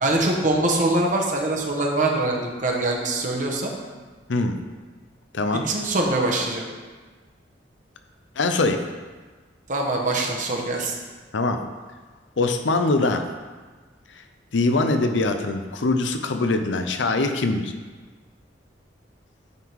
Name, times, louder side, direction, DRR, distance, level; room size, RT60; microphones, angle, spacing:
voice 1, 0.0-3.7 5.7-6.6 9.7-10.9, right 2 dB, 45° right, 0 dB, 1.1 m, -23 dB
voice 2, 5.3-5.7 8.4-8.8 11.3-11.6 12.4-13.3 14.5-17.7, left 3 dB, 80° left, 7 dB, 0.6 m, -22 dB
9.5 x 3.7 x 4.6 m, 1.4 s
head